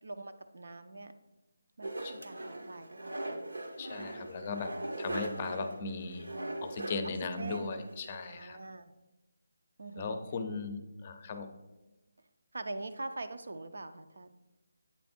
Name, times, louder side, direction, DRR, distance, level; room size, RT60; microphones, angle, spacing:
voice 1, 0.0-1.1 1.8-3.5 7.4-7.8 8.1-8.9 9.8-10.2 12.5-14.3, right 2 dB, 70° right, 9 dB, 0.5 m, -43 dB
sound 1, 1.8-8.3, right 1 dB, 90° right, 0.9 m, -40 dB
voice 2, 3.8-4.7 5.0-6.3 6.6-8.6 10.0-11.5, left 4 dB, 30° left, 8 dB, 0.5 m, -37 dB
8.2 x 3.4 x 4.3 m, 1.1 s
figure-of-eight pair, 165°, 0 cm